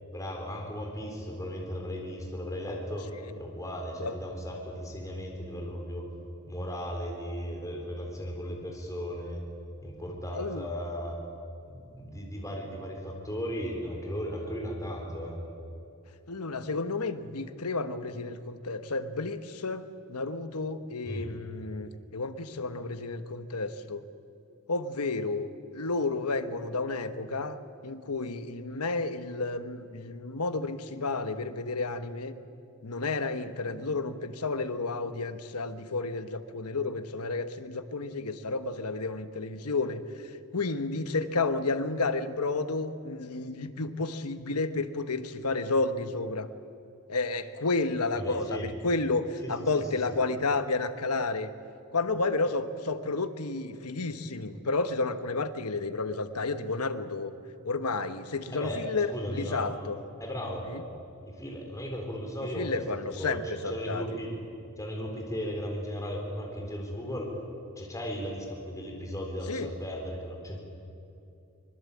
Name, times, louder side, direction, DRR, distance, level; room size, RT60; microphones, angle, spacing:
voice 1, 0.1-3.0 3.4-6.0 6.5-9.4 9.8-11.2 11.7-15.4 21.0-21.3 48.1-48.7 49.4-49.8 58.5-58.8 59.1-59.7 60.2-60.7 61.2-62.8 63.2-63.4 63.6-64.3 64.8-67.3 67.8-70.6, equal, 15° left, 0 dB, 4.0 m, -36 dB
voice 2, 10.3-10.7 16.3-24.0 24.7-27.6 27.8-32.3 32.8-40.0 40.5-46.5 47.1-51.5 51.9-57.3 57.6-60.0 60.7-60.8 62.5-64.0 69.5-69.7, left 3 dB, 90° left, 10 dB, 1.3 m, -31 dB
25.0 x 21.0 x 8.6 m, 2.6 s
head